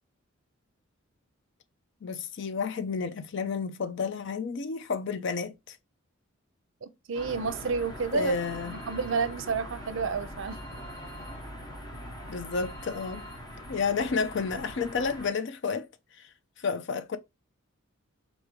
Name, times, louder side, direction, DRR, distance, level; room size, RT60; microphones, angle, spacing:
voice 1, 2.0-5.8 8.1-8.8 12.3-13.3 13.7-15.9 16.2-16.3 16.6-17.2, left 5 dB, 60° left, 0.5 m, -31 dB
voice 2, 6.8-8.3 8.6-10.6, right 5 dB, 65° right, 0.5 m, -30 dB
sound 1, 7.1-15.3, equal, 20° left, 1.0 m, -42 dB
4.8 x 2.6 x 3.0 m
head